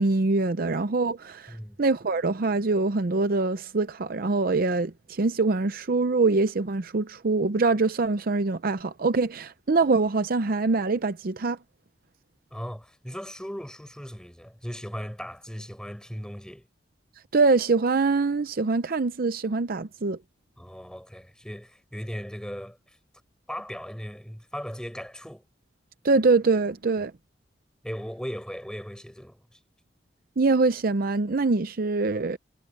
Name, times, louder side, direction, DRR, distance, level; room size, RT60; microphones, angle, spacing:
voice 1, 0.0-11.6 17.3-20.2 26.0-27.1 30.4-32.4, right 3 dB, 50° right, 0.6 m, -24 dB
voice 2, 1.5-1.8 12.5-16.7 20.6-22.8 23.5-25.4 27.8-29.4, equal, 5° left, 7.4 m, -37 dB
head